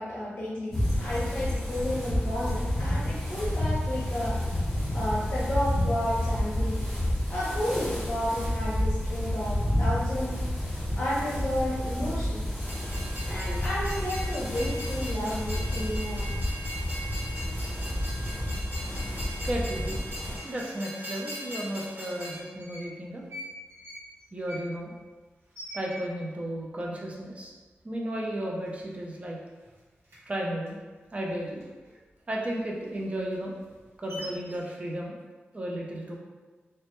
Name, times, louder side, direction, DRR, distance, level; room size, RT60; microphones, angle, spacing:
voice 1, 0.0-4.4 4.7-6.8 7.3-10.4 10.7-12.4 13.2-16.3, left 1 dB, 55° left, -8 dB, 0.6 m, -32 dB
sound 1, 0.7-20.4, left 1 dB, 5° left, 0.8 m, -30 dB
Train, 12.6-22.4, equal, 50° right, 1.1 m, -40 dB
voice 2, 19.4-20.0 20.4-23.2 24.3-24.9 25.7-27.5 27.8-29.4 30.3-30.8 31.1-31.6 32.3-33.6 34.0-35.1 35.5-36.1, right 1 dB, 30° right, -2 dB, 0.5 m, -33 dB
sound 2, 21.1-21.2 22.1-22.9 23.2-26.4 26.8-26.9 27.1-27.6 28.0-28.2 28.5-29.3 29.6-31.9 32.3-34.6, equal, 80° right, 0.7 m, -45 dB
2.1 x 2.0 x 2.9 m, 1.3 s
wide cardioid pair, 75°, 4 cm